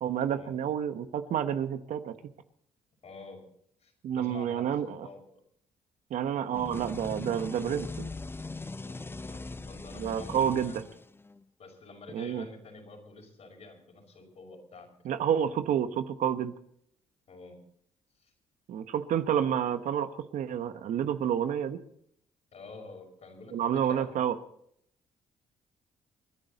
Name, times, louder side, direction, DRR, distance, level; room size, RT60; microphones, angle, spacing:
voice 1, 0.0-2.1 4.0-5.1 6.1-8.1 10.0-10.8 12.1-12.4 15.0-16.5 18.7-21.8 23.5-24.3, right 9 dB, 65° right, 10 dB, 1.1 m, -29 dB
voice 2, 3.0-3.4 3.8-5.2 6.2-6.6 8.8-10.8 11.6-14.9 17.3-17.6 18.2-18.3 22.5-24.1, left 3 dB, 55° left, 2 dB, 5.8 m, -48 dB
sound 1, 6.5-11.4, left 3 dB, 15° left, 0.6 m, -40 dB
28.0 x 10.5 x 4.0 m, 0.69 s
supercardioid pair, 60°, 14 cm